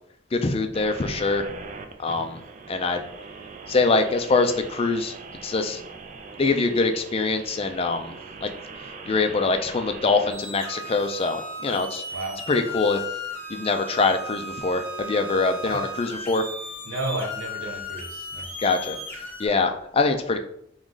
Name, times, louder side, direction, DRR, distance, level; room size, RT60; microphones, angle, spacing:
voice 1, 0.3-1.5 2.0-2.4 2.7-3.0 3.7-5.1 5.4-5.8 6.4-8.1 8.4-8.5 9.1-12.0 12.5-13.0 13.5-16.4 18.6-20.4, left 3 dB, 30° left, 0.4 m, -24 dB
sound 1, 0.7-10.3, right 4 dB, 40° right, 0.4 m, -41 dB
sound 2, 10.3-19.5, left 2 dB, 10° left, 0.8 m, -36 dB
voice 2, 12.1-12.5 15.6-15.9 16.8-18.5, right 2 dB, 90° right, 0.9 m, -33 dB
3.7 x 3.1 x 3.8 m
head